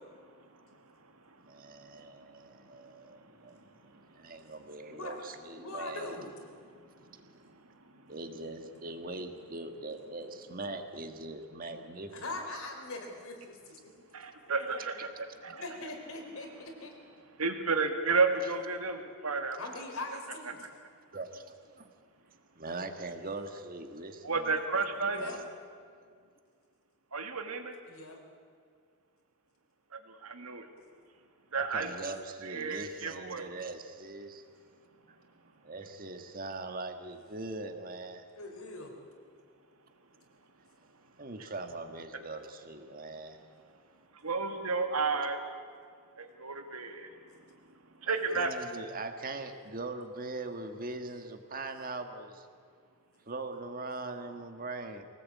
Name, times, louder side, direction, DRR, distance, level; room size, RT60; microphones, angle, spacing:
voice 1, 1.4-6.2 7.0-7.1 8.1-12.1 21.1-21.9 22.5-24.6 25.2-25.4 31.5-34.4 35.1-35.2 35.6-38.2 41.2-43.4 48.1-52.5 53.3-55.0, right 2 dB, 40° right, 6 dB, 1.7 m, -41 dB
voice 2, 5.6-6.3 12.1-13.8 14.5-14.8 15.5-16.9 19.6-20.7 25.1-25.4 27.9-28.2 38.4-38.9, left 2 dB, 75° left, 2 dB, 4.0 m, -41 dB
voice 3, 6.8-7.6 7.9-8.1 14.1-15.1 15.4-15.6 17.4-19.6 20.5-20.6 24.2-25.2 27.1-27.8 29.9-30.7 31.5-31.9 32.4-33.5 44.2-45.4 46.2-47.1 48.0-48.7, right 4 dB, 90° right, 6 dB, 2.2 m, -32 dB
24.5 x 18.0 x 8.5 m, 2.1 s
head